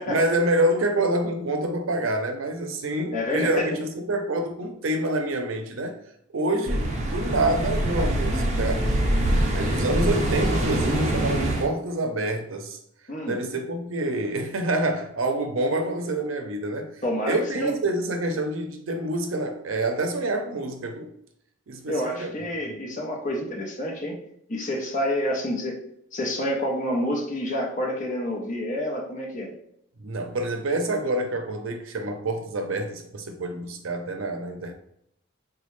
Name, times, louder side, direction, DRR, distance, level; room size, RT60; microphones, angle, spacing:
voice 1, 0.0-6.0 6.3-8.9 9.5-12.8 13.3-16.9 17.3-21.1 21.7-22.3 30.0-34.7, right 1 dB, 80° right, 0.6 m, -27 dB
voice 2, 3.1-3.7 13.1-13.4 17.0-17.7 21.9-24.2 24.5-25.8 26.1-29.5, left 1 dB, 40° left, 0.7 m, -28 dB
sound 1, 6.7-11.7, right 1 dB, 35° right, 0.5 m, -24 dB
4.1 x 2.3 x 3.1 m
head